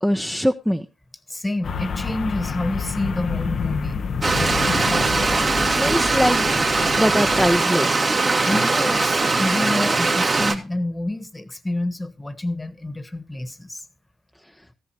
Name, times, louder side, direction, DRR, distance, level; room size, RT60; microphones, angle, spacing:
voice 1, 0.0-0.9 5.5-6.7 7.0-8.2, equal, ahead, 0.8 m, -23 dB
voice 2, 1.3-4.0 8.1-13.8, left 1 dB, 20° left, 1.4 m, -28 dB
sound 1, 1.6-7.6, left 5 dB, 60° left, 0.8 m, -28 dB
Stream, 4.2-10.6, right 3 dB, 45° right, 2.0 m, -20 dB
14.0 x 10.5 x 2.9 m
hypercardioid pair, 45°, 0 cm